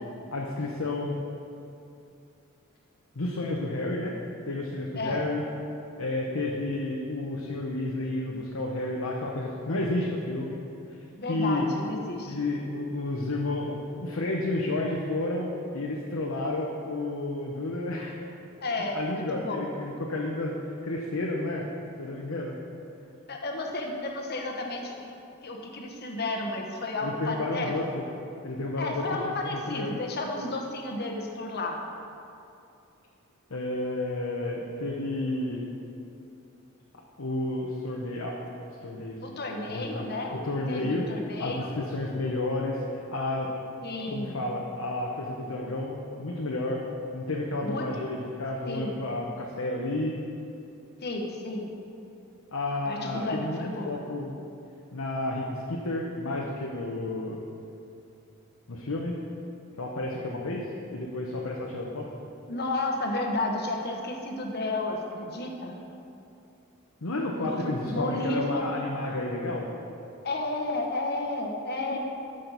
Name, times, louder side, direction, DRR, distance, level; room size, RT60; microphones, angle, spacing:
voice 1, 0.3-1.1 3.1-4.1 4.5-5.4 6.0-10.6 11.3-11.7 12.3-18.1 18.8-20.6 20.8-21.7 22.0-22.6 27.0-28.0 28.4-29.9 33.5-35.6 37.2-38.4 38.8-39.2 39.7-40.0 40.3-41.0 41.4-43.5 44.1-46.8 47.1-50.1 52.5-54.3 54.9-57.4 58.7-59.2 59.8-62.1 67.0-69.7 71.9-72.0, left 2 dB, 80° left, -2 dB, 0.9 m, -31 dB
voice 2, 4.9-5.3 11.2-12.4 18.6-19.7 23.3-25.2 25.4-27.7 28.8-31.8 39.2-41.7 43.8-44.4 47.6-47.9 48.7-49.0 51.0-51.7 52.7-54.0 62.5-65.8 67.4-68.6 70.2-72.0, left 2 dB, 50° left, 1 dB, 1.1 m, -32 dB
13.0 x 6.5 x 4.0 m, 2.7 s
head